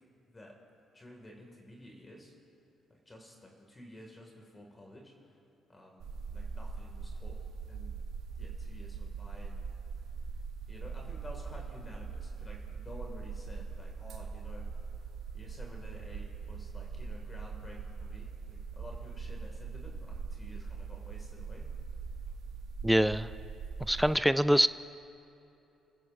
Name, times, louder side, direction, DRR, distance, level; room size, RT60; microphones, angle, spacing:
voice 1, 0.9-2.3 2.9-5.3 5.7-7.4 7.7-8.0 8.4-9.6 10.7-14.8 15.3-21.7 23.8-24.1, left 1 dB, 25° left, 0 dB, 2.3 m, -52 dB
sound 1, 6.0-24.2, right 5 dB, 70° right, 1.0 m, -41 dB
voice 2, 22.8-23.3 23.9-24.7, equal, ahead, 14 dB, 0.3 m, -24 dB
30.0 x 10.5 x 2.7 m, 2.9 s
hypercardioid pair, 55°, 0 cm